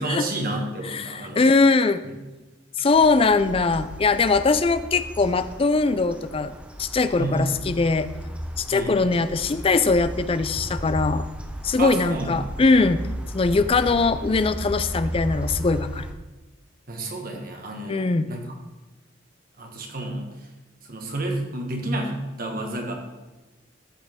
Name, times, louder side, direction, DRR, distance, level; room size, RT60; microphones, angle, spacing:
voice 1, 0.0-1.5 2.0-2.1 7.2-7.5 8.7-9.0 11.8-12.3 16.9-18.6 19.6-20.5 20.8-22.9, right 1 dB, 50° right, 2 dB, 1.6 m, -30 dB
voice 2, 0.9-2.0 2.8-8.1 8.6-11.3 11.6-13.0 13.3-16.1 17.9-18.3, left 3 dB, 30° left, 12 dB, 0.4 m, -21 dB
sound 1, 2.9-16.1, equal, 5° right, 0.7 m, -35 dB
13.0 x 6.4 x 3.6 m, 1.1 s
head